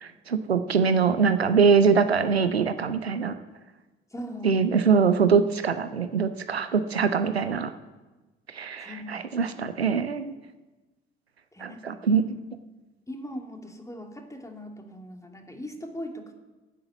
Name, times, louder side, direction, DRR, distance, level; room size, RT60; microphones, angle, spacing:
voice 1, 0.0-3.3 4.4-7.7 8.5-10.3 11.6-12.3, right 5 dB, 85° right, 11 dB, 0.6 m, -23 dB
voice 2, 4.1-4.6 8.8-9.3 11.5-12.0 13.1-16.3, equal, 10° left, 3 dB, 2.6 m, -39 dB
15.5 x 8.7 x 7.9 m, 1.2 s
figure-of-eight pair, 50°, 30 cm